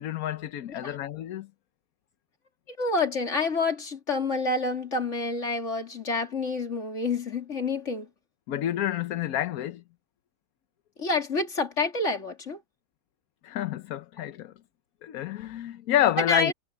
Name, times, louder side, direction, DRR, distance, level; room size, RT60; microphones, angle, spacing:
voice 1, 0.0-1.5 8.5-9.8 13.4-14.5 15.0-16.5, left 12 dB, 70° left, 1.2 m, -28 dB
voice 2, 2.7-8.1 11.0-12.6 16.2-16.5, left 3 dB, 50° left, 3.1 m, -28 dB
omnidirectional pair, 1.6 m